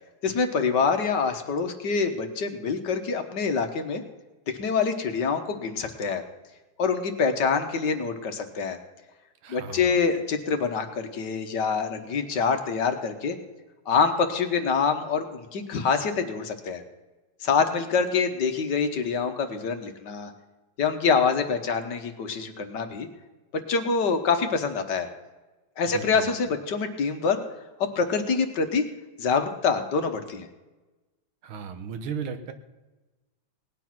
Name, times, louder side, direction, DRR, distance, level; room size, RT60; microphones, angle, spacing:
voice 1, 0.2-4.0 4.6-6.2 6.8-8.8 9.5-13.4 13.9-16.8 17.4-20.3 20.8-23.1 23.5-25.1 25.8-27.4 27.9-28.8 29.2-30.5, left 5 dB, 60° left, 7 dB, 1.7 m, -25 dB
voice 2, 9.4-10.0 25.9-26.2 31.4-32.5, right 6 dB, 85° right, 9 dB, 2.0 m, -36 dB
18.5 x 9.7 x 6.0 m, 1.1 s
omnidirectional pair, 2.2 m